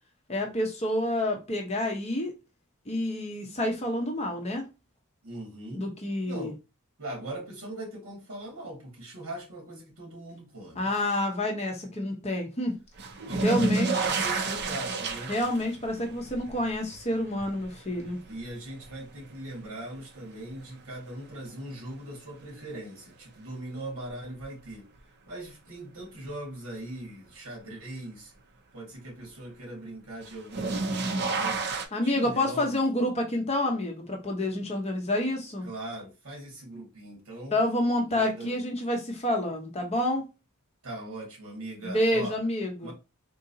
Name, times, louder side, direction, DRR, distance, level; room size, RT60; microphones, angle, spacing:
voice 1, 0.3-2.3 2.9-4.6 5.7-6.5 10.7-12.8 13.4-14.0 15.3-18.2 31.9-35.7 37.5-40.2 41.8-42.9, left 1 dB, 30° left, 0.7 m, -28 dB
voice 2, 5.2-5.8 6.3-6.6 7.0-10.9 13.3-15.4 18.2-24.9 25.3-28.3 28.7-31.7 32.0-32.8 35.6-37.6 38.1-38.6 40.8-42.4 42.8-42.9, right 1 dB, 70° right, 1.9 m, -40 dB
sound 1, 13.0-20.0 20.4-21.1 22.7-22.8 24.4-24.5 30.2-31.9, right 3 dB, 50° right, 0.5 m, -31 dB
3.7 x 2.7 x 2.7 m
head